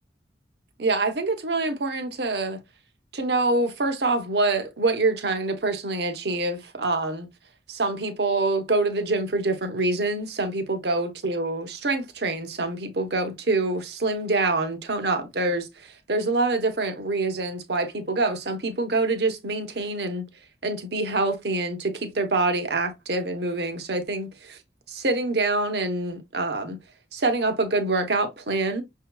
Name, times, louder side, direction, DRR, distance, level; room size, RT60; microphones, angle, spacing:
voice 1, 0.8-2.6 3.1-7.3 7.7-20.2 20.6-24.6 24.9-26.8 27.1-28.8, right 2 dB, 70° right, 0.9 m, -26 dB
6.2 x 2.8 x 2.2 m
head